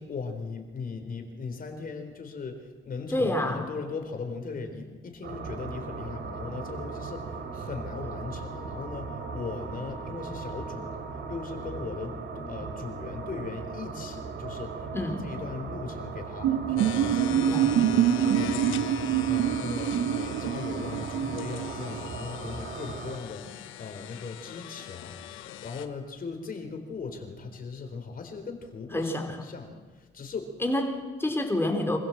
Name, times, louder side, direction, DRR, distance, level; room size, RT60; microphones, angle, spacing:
voice 1, 0.0-12.2 12.5-30.5, left 4 dB, 45° left, 5 dB, 4.1 m, -39 dB
voice 2, 3.1-3.6 14.9-15.3 17.5-17.7 28.9-29.4 30.6-32.0, left 1 dB, 10° left, 3 dB, 4.2 m, -28 dB
sound 1, 5.2-23.2, right 4 dB, 65° right, 3.4 m, -38 dB
sound 2, 16.4-22.1, right 10 dB, 85° right, 1.1 m, -26 dB
sound 3, 16.8-25.9, left 12 dB, 90° left, 1.2 m, -41 dB
26.0 x 15.5 x 7.6 m, 1.4 s
cardioid pair, 90°, 20 cm